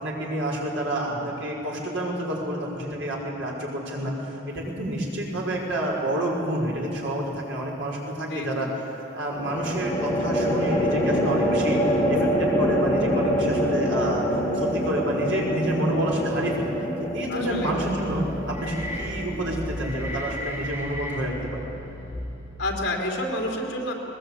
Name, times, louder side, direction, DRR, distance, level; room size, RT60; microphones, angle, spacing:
voice 1, 0.0-8.7 9.1-14.3 14.5-16.7 17.1-21.7, right 1 dB, 75° right, -2 dB, 5.2 m, -29 dB
sound 1, 6.2-6.8 9.3-20.7, equal, 10° left, 3.0 m, -26 dB
voice 2, 8.3-8.7 17.3-17.8 22.6-23.9, left 1 dB, 60° left, 0 dB, 3.6 m, -29 dB
sound 2, 17.4-22.7, equal, 15° right, 3.8 m, -35 dB
21.0 x 20.0 x 8.5 m, 2.9 s
head